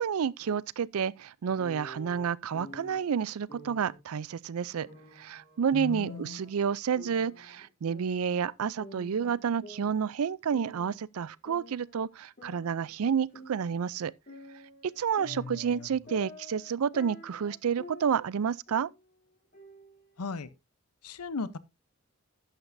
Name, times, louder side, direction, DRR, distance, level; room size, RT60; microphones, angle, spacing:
voice 1, 0.0-4.9 5.2-14.1 14.8-18.9, right 7 dB, 70° right, 0.4 m, -30 dB
sound 1, 1.6-3.0 3.5-4.0 4.9-6.5 6.9-8.5 8.8-11.0 11.4-13.9 14.3-18.4 18.7-19.0 19.5-20.5, left 1 dB, 45° left, 2.8 m, -49 dB
voice 2, 5.7-6.4 15.3-15.9 20.2-20.5 21.0-21.6, left 4 dB, 85° left, 0.7 m, -37 dB
11.5 x 9.0 x 2.6 m
head